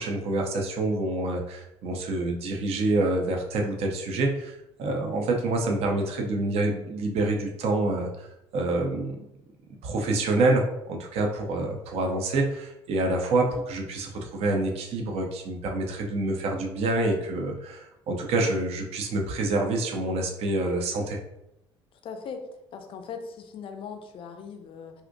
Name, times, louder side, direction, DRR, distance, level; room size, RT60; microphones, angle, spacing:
voice 1, 0.0-8.3 8.5-9.2 9.8-21.2, right 2 dB, 45° right, 2 dB, 0.5 m, -27 dB
voice 2, 22.0-22.4 22.7-24.9, left 6 dB, 40° left, 6 dB, 0.4 m, -39 dB
2.5 x 2.1 x 2.5 m, 0.86 s
figure-of-eight pair, 55°, 14 cm